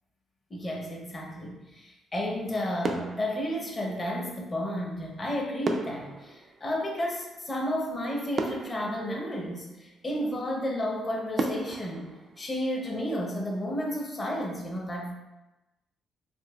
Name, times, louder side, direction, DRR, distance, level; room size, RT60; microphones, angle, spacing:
voice 1, 0.5-15.1, equal, 30° left, -1 dB, 0.8 m, -32 dB
sound 1, 2.3-2.5 2.8-4.3 5.6-7.6 8.0-8.1 8.4-9.9 10.5-10.6 11.4-13.3 13.6-13.8, right 3 dB, 45° right, 0.4 m, -35 dB
3.8 x 2.5 x 2.3 m, 1.0 s
cardioid pair, 90°, 0 cm